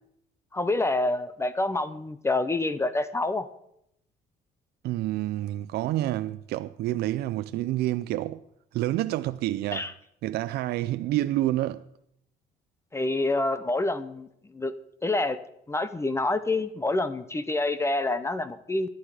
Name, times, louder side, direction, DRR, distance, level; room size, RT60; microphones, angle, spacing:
voice 1, 0.5-3.5 9.7-9.9 12.9-14.3 14.5-14.7 15.0-15.4 15.7-18.9, left 2 dB, 15° left, 0.8 m, -27 dB
voice 2, 4.8-8.4 8.7-9.9 10.2-11.8, right 15 dB, 75° right, 0.5 m, -28 dB
18.0 x 11.5 x 4.9 m
cardioid pair, 110°, 17 cm